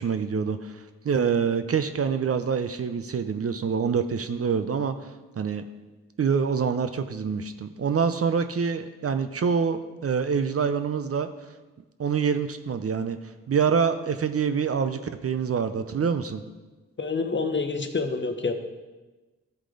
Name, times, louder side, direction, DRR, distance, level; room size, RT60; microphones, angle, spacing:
voice 1, 0.0-5.1 5.4-5.6 6.2-11.3 12.0-13.2 13.5-16.4, right 6 dB, 45° right, 10 dB, 0.6 m, -26 dB
voice 2, 17.0-18.5, left 4 dB, 35° left, 6 dB, 1.0 m, -27 dB
12.5 x 4.9 x 3.9 m, 1.2 s
supercardioid pair, 50°, 33 cm